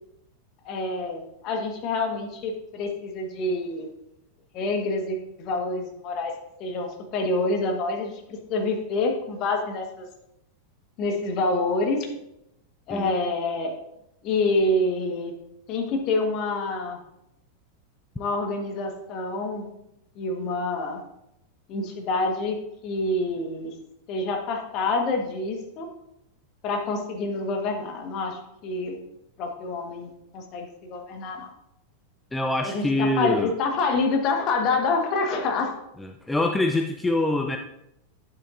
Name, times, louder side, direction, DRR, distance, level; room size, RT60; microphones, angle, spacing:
voice 1, 0.6-3.9 4.5-6.3 6.6-10.1 11.0-12.1 12.9-13.7 14.2-15.3 15.7-17.0 18.2-19.7 20.2-21.0 21.7-22.6 22.8-23.7 24.1-25.9 26.6-29.0 29.4-31.5 32.6-35.7, left 2 dB, 40° left, 3 dB, 1.4 m, -27 dB
voice 2, 32.3-33.5 36.0-37.6, left 2 dB, 10° left, 4 dB, 0.5 m, -25 dB
9.4 x 7.3 x 2.6 m, 0.82 s
figure-of-eight pair, 90°, 0 cm